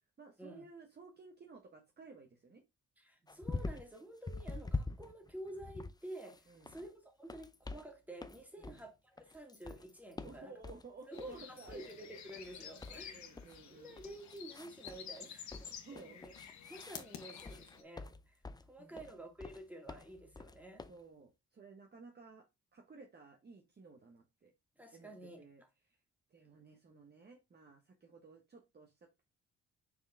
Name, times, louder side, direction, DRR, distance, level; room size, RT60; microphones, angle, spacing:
voice 1, 0.2-2.6 6.5-6.8 8.6-8.8 10.2-11.8 12.8-14.0 15.8-16.5 18.8-19.1 20.9-22.5 22.7-24.5 24.9-26.0 26.3-29.3, right 4 dB, 35° right, 1.2 m, -56 dB
voice 2, 3.0-10.6 11.1-13.3 13.7-16.3 16.7-20.9 24.8-25.5 26.5-26.7, right 1 dB, 5° right, 2.2 m, -50 dB
sound 1, 3.3-4.0 4.3-6.9 7.2-7.9 8.2-8.9 9.2-10.9 11.2-11.4 11.7-11.9 12.3-13.6 14.0-15.2 15.5-18.7 19.0-19.6 19.9-21.0, left 3 dB, 15° left, 0.6 m, -45 dB
sound 2, 11.1-17.8, left 8 dB, 65° left, 1.4 m, -51 dB
6.0 x 4.5 x 3.5 m
cardioid pair, 90°, 30 cm